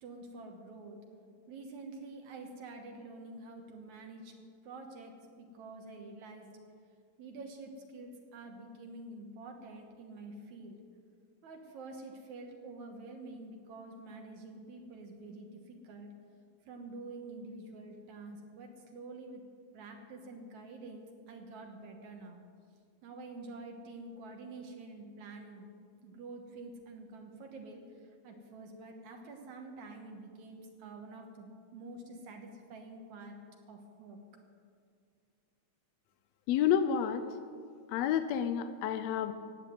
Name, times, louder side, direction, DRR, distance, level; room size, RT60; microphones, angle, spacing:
voice 1, 0.0-1.0 1.5-4.3 4.6-6.5 7.2-10.8 11.4-16.1 16.7-19.4 19.7-22.4 23.0-25.7 26.0-27.8 28.2-33.4 33.7-34.2, right 2 dB, 75° right, 3 dB, 2.7 m, -47 dB
voice 2, 36.5-37.2 37.9-39.3, left 9 dB, 75° left, 10 dB, 1.7 m, -29 dB
16.0 x 8.5 x 9.2 m, 2.2 s
omnidirectional pair, 3.3 m